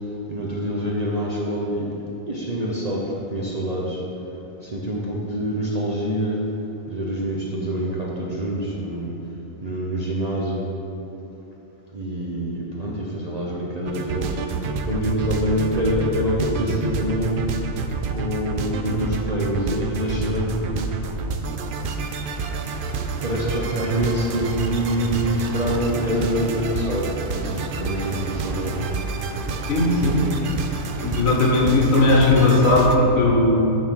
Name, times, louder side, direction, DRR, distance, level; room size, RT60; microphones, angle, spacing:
voice 1, 0.3-1.9 2.3-3.0 3.3-4.0 4.6-6.4 6.9-9.1 9.6-10.7 11.9-14.4 14.9-17.4 18.1-20.7 23.2-28.8, equal, 35° right, -4 dB, 0.8 m, -25 dB
sound 1, 13.9-33.0, right 4 dB, 70° right, 0.5 m, -28 dB
voice 2, 29.7-30.2 31.0-33.8, left 2 dB, 75° left, -2 dB, 1.6 m, -17 dB
7.0 x 4.4 x 6.2 m, 2.9 s
omnidirectional pair, 1.4 m